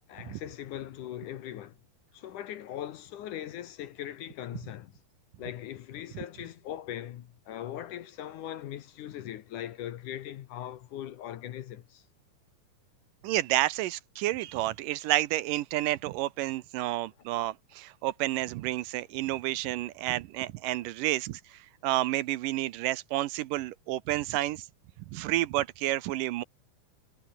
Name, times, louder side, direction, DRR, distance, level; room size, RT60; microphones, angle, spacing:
voice 1, 0.1-1.8 2.1-4.9 5.4-12.1, left 11 dB, 65° left, 2.3 m, -40 dB
voice 2, 13.2-24.7 25.1-26.4, right 16 dB, 75° right, 2.1 m, -30 dB
omnidirectional pair, 4.4 m